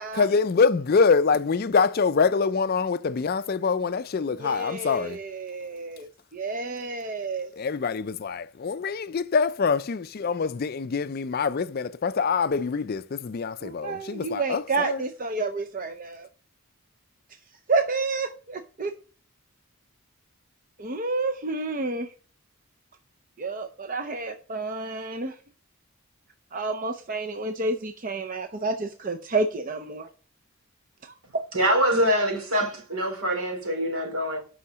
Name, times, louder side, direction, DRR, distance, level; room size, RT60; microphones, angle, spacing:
voice 1, 0.1-5.2 7.5-15.0, left 5 dB, 45° left, 0.4 m, -25 dB
voice 2, 4.4-6.1 6.3-7.5 13.6-16.3 17.7-18.9 20.8-22.1 23.4-25.4 26.5-30.1 31.0-31.2, right 3 dB, 35° right, 0.6 m, -30 dB
voice 3, 31.5-34.4, equal, 70° right, 3.1 m, -24 dB
8.4 x 5.6 x 6.1 m
head